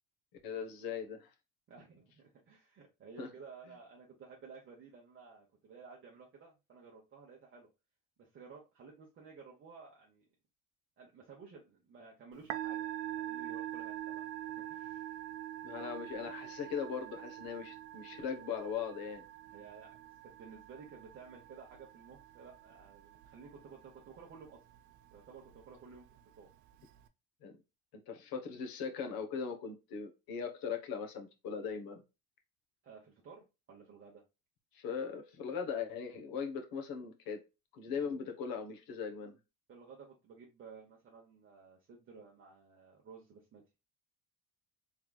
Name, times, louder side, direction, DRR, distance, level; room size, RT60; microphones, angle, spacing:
voice 1, 0.4-1.3 3.2-3.3 15.6-19.2 27.4-27.6 27.9-32.0 34.7-37.4 37.7-39.4, left 6 dB, 60° left, 1.2 m, -39 dB
voice 2, 1.7-7.7 8.2-10.3 11.0-15.2 19.5-20.0 20.2-24.6 25.1-26.1 26.4-26.5 32.8-34.2 39.7-43.6, right 5 dB, 30° right, 0.9 m, -54 dB
Musical instrument, 12.3-27.1, right 12 dB, 50° right, 0.5 m, -45 dB
4.6 x 3.6 x 2.2 m
cardioid pair, 150°, 39 cm